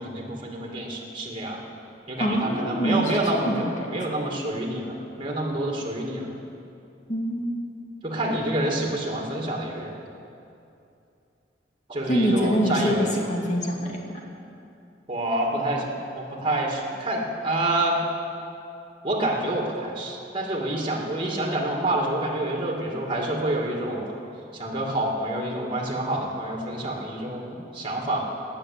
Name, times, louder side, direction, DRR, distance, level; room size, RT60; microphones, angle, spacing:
voice 1, 0.0-1.6 2.1-6.3 8.0-9.9 11.9-13.2 15.1-15.9 16.2-18.0 19.0-24.1 24.5-28.3, right 1 dB, 30° right, -1 dB, 2.3 m, -27 dB
voice 2, 2.2-3.9 7.1-7.7 12.1-14.0, equal, 45° left, 0 dB, 2.4 m, -25 dB
19.5 x 7.3 x 8.5 m, 2.6 s
head